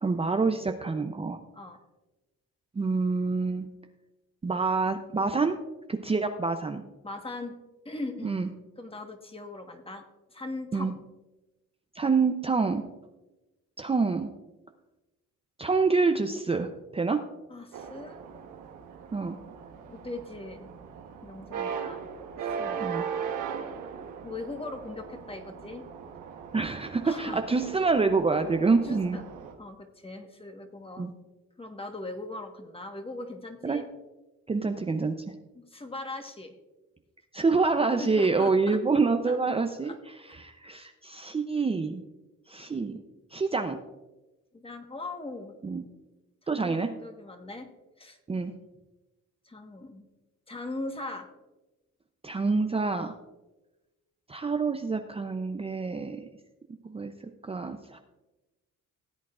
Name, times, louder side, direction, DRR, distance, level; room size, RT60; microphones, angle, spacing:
voice 1, 0.0-1.4 2.7-3.7 4.4-5.6 5.9-6.8 8.2-8.5 10.7-10.9 11.9-12.8 13.8-14.3 15.6-17.2 19.1-19.4 22.8-23.0 26.5-29.2 31.0-31.1 33.6-33.8 34.5-35.2 37.3-42.0 42.5-43.0 43.3-43.8 45.6-45.8 46.5-46.9 48.3-48.5 52.2-53.1 54.3-56.2 56.8-57.1 57.4-58.0, right 4 dB, 20° right, 5 dB, 0.6 m, -27 dB
voice 2, 7.0-7.5 7.8-8.4 8.8-10.0 10.3-11.0 17.5-18.2 19.9-20.7 21.2-22.1 22.5-22.9 24.2-25.8 27.0-27.4 28.6-29.3 29.6-31.1 31.6-33.8 35.5-36.5 38.0-38.8 39.3-39.4 39.8-40.4 44.5-45.5 46.4-47.7 48.0-48.2 49.4-50.0 50.5-51.3, left 2 dB, 20° left, 5 dB, 1.4 m, -40 dB
sound 1, 17.7-29.5, right 7 dB, 85° right, 1.2 m, -39 dB
17.5 x 8.3 x 2.5 m, 1.1 s
cardioid pair, 90°, 30 cm